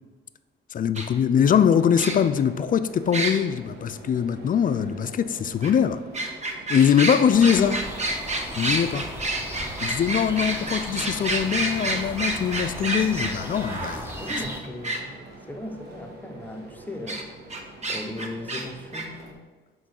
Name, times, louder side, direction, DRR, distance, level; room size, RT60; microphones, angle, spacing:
voice 1, 0.7-6.0 6.7-7.8 8.6-9.1 9.8-14.1, left 8 dB, 45° left, 0.4 m, -22 dB
sound 1, 0.9-1.1 2.0-2.4 3.1-3.4 5.6-5.7 6.1-15.0 17.1-17.2 17.5-18.6 18.9-19.0, right 2 dB, 35° right, 1.2 m, -28 dB
sound 2, 1.4-19.3, right 2 dB, 55° right, 1.6 m, -44 dB
sound 3, 7.3-14.6, equal, 10° right, 1.1 m, -37 dB
voice 2, 14.2-15.2 15.5-17.3 17.9-19.4, left 1 dB, 10° left, 0.9 m, -37 dB
5.9 x 4.6 x 6.5 m
cardioid pair, 90°, 20 cm